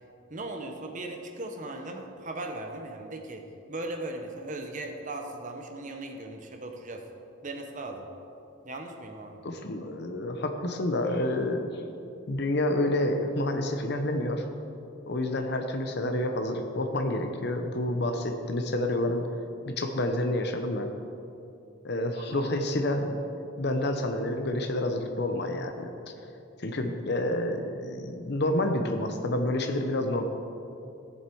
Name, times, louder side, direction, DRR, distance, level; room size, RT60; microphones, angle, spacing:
voice 1, 0.3-7.0 7.4-8.1 8.6-9.4 22.1-22.5 26.7-26.8, right 2 dB, 40° right, 3 dB, 0.9 m, -38 dB
voice 2, 9.4-11.8 12.3-14.4 15.1-19.3 19.7-20.9 21.8-23.2 23.6-25.9 26.6-30.2, left 1 dB, 50° left, 4 dB, 0.8 m, -29 dB
16.0 x 7.3 x 4.6 m, 2.8 s
head